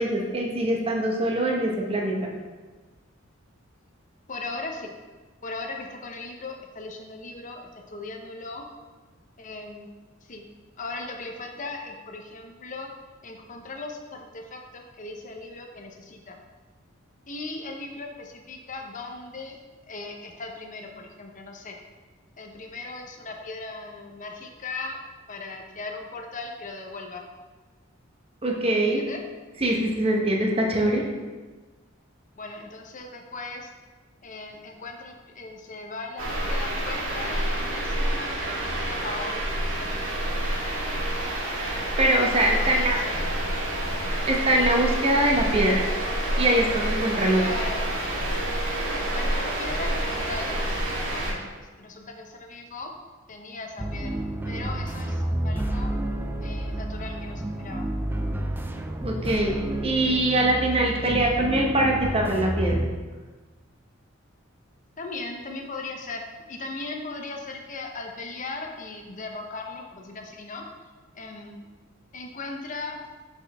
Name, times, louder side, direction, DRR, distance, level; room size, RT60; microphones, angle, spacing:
voice 1, 0.0-2.3 28.4-29.0 29.6-31.0 41.6-43.0 44.3-45.9 46.4-47.4 59.0-62.8, right 1 dB, 30° right, 0 dB, 1.0 m, -23 dB
voice 2, 4.3-4.9 5.4-8.6 9.4-9.9 10.2-10.4 10.8-12.9 13.2-16.4 17.3-19.6 19.9-21.8 22.4-25.0 25.3-27.2 28.8-29.2 32.4-33.7 34.2-40.2 42.6-43.6 47.4-47.9 48.9-51.5 51.8-52.9 53.3-55.9 56.4-57.8 65.0-70.6 71.1-71.7 72.1-73.0, left 3 dB, 40° left, 2 dB, 0.8 m, -38 dB
sound 1, 36.2-51.3, right 1 dB, 85° right, 2.0 m, -28 dB
sound 2, 53.8-62.9, right 1 dB, 10° right, 0.4 m, -30 dB
6.1 x 5.9 x 3.4 m, 1.3 s
head